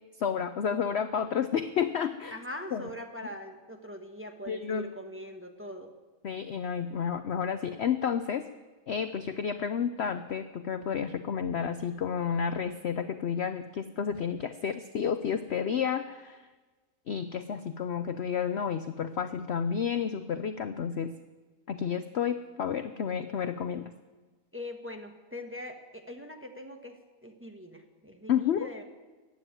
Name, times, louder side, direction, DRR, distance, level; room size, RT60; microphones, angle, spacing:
voice 1, 0.2-2.4 2.7-2.8 4.5-4.9 6.2-8.5 8.9-16.4 17.1-21.1 21.7-23.9 28.3-28.7, left 7 dB, 60° left, 10 dB, 0.7 m, -31 dB
voice 2, 2.3-5.9 24.5-28.8, left 1 dB, 10° right, 3 dB, 1.1 m, -42 dB
15.5 x 9.6 x 9.3 m, 1.3 s
omnidirectional pair, 1.8 m